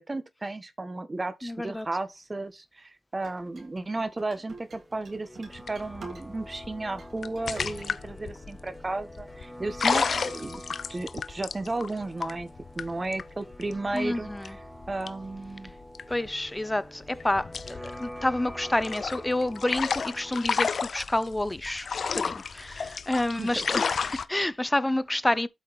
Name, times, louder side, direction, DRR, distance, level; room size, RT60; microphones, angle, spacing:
voice 1, 0.0-10.6 10.9-12.5 12.7-14.6 14.9-15.7 23.4-23.6, right 2 dB, 35° right, 1.4 m, -34 dB
voice 2, 1.4-1.9 13.9-14.6 16.1-21.9 22.1-25.5, left 1 dB, 20° left, 0.7 m, -29 dB
sound 1, 3.2-6.5 6.9-7.9, right 4 dB, 80° right, 2.9 m, -48 dB
sound 2, 4.5-20.7, equal, 5° right, 1.4 m, -46 dB
sound 3, 5.5-16.7 17.0-24.3, left 6 dB, 80° left, 0.5 m, -32 dB
8.3 x 5.0 x 4.2 m
cardioid pair, 55°, 0 cm